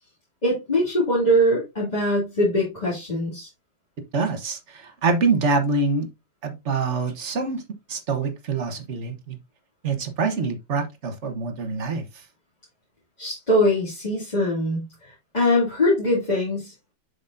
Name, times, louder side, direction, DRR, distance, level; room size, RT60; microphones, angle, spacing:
voice 1, 0.4-3.5 13.2-16.7, equal, 20° left, 2.7 m, -22 dB
voice 2, 4.1-6.1 6.4-7.6 7.9-9.4 9.8-12.0, right 4 dB, 45° right, 1.2 m, -25 dB
7.2 x 6.9 x 2.6 m
omnidirectional pair, 2.1 m